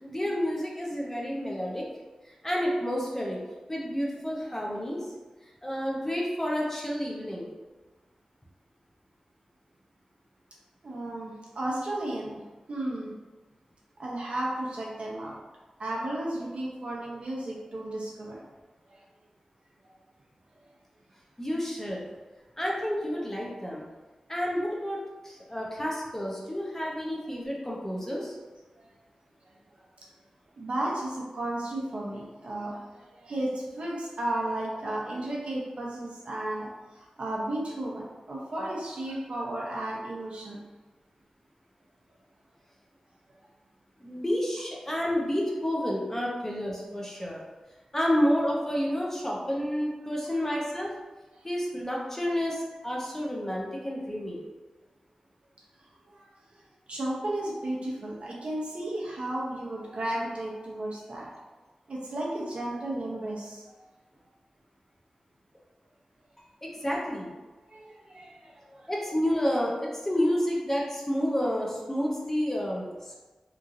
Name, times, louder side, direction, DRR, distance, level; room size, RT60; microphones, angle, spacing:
voice 1, 0.0-1.9 2.2-3.4 3.7-5.1 5.4-7.5 21.4-22.0 22.6-23.8 24.3-28.4 44.0-47.4 47.9-50.9 51.4-54.4 66.6-67.3 68.9-73.2, equal, 20° left, -3 dB, 0.6 m, -30 dB
voice 2, 10.8-12.4 12.7-13.1 14.0-15.3 15.8-18.4 18.8-19.0 28.8-28.9 29.4-29.5 29.8-29.9 30.6-40.6 50.3-50.4 51.3-51.4 56.1-56.6 56.9-61.4 61.9-63.6 67.7-68.9, right 1 dB, 70° right, -4 dB, 0.7 m, -34 dB
3.0 x 2.6 x 2.5 m, 1.2 s
wide cardioid pair, 75°, 2 cm